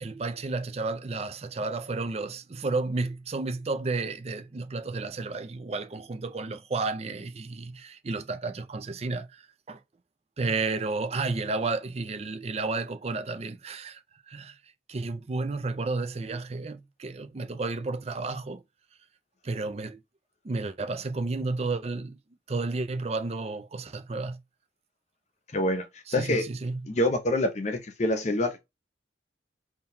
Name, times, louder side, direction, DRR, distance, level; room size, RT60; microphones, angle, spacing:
voice 1, 0.0-9.3 9.7-9.8 10.4-14.0 14.3-14.5 14.9-18.6 19.4-20.0 20.4-22.2 22.5-24.4 26.2-26.8, right 3 dB, 35° right, 0.4 m, -32 dB
voice 2, 25.5-26.4 26.9-28.6, left 1 dB, 40° left, 0.6 m, -26 dB
3.8 x 2.8 x 2.7 m
head